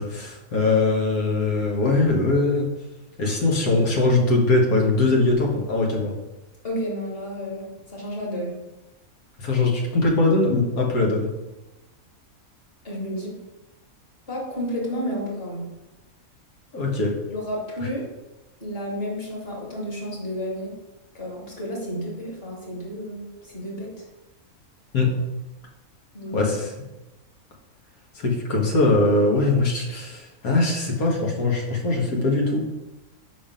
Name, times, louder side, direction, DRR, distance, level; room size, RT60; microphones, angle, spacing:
voice 1, 0.0-2.7 3.2-6.1 9.4-11.3 16.7-17.1 24.9-25.1 26.3-26.7 28.2-32.6, left 2 dB, 85° left, -1 dB, 1.8 m, -21 dB
voice 2, 6.6-8.6 12.8-13.4 14.3-15.7 17.3-18.0 18.6-20.7 21.1-23.9 26.1-26.5, equal, 40° left, -3 dB, 2.2 m, -31 dB
5.3 x 4.9 x 5.1 m, 1.0 s
omnidirectional pair, 1.5 m